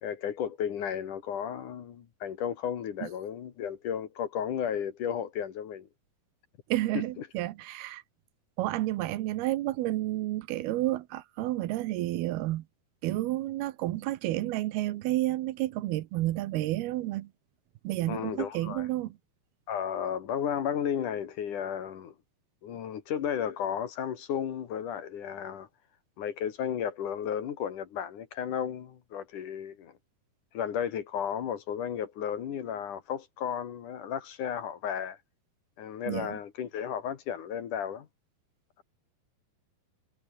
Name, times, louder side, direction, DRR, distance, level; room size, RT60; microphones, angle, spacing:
voice 1, 0.0-5.9 6.9-7.3 18.1-18.9 19.7-22.1 22.6-25.7 26.2-29.9 30.5-35.2 35.8-38.1, left 8 dB, 60° left, 3.1 m, -33 dB
voice 2, 6.7-8.0 8.6-12.6 13.0-17.3 17.8-19.1 36.1-36.4, right 16 dB, 80° right, 2.9 m, -30 dB
omnidirectional pair, 4.5 m